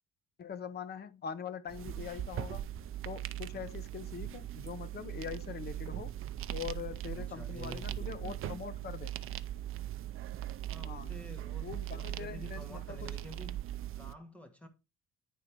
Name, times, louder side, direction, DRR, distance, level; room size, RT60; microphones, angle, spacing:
voice 1, 0.4-2.6 3.0-6.1 6.5-9.2 10.8-11.1 11.6-13.1, left 7 dB, 35° left, 0.6 m, -43 dB
sound 1, 1.7-14.1, right 12 dB, 45° right, 0.5 m, -40 dB
voice 2, 7.1-8.6 10.7-13.6 14.0-14.7, left 1 dB, 5° left, 1.2 m, -50 dB
10.0 x 3.9 x 4.6 m
cardioid pair, 160°, 30 cm